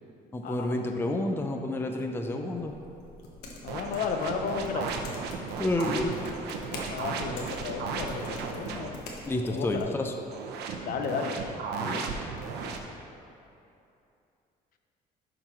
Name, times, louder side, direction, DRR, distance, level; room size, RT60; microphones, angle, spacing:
voice 1, 0.3-2.7 5.6-6.1 9.3-10.1 11.8-12.1, left 1 dB, 15° left, 3 dB, 0.5 m, -30 dB
sound 1, 2.6-9.8, left 2 dB, 90° left, 1.2 m, -45 dB
voice 2, 3.6-4.9 6.9-9.0 9.5-9.9 10.8-11.4, left 5 dB, 60° left, 5 dB, 0.7 m, -33 dB
sound 2, 3.7-8.9 10.3-12.8, right 5 dB, 75° right, 0.8 m, -35 dB
11.5 x 4.0 x 4.4 m, 2.7 s
cardioid pair, 110°, 17 cm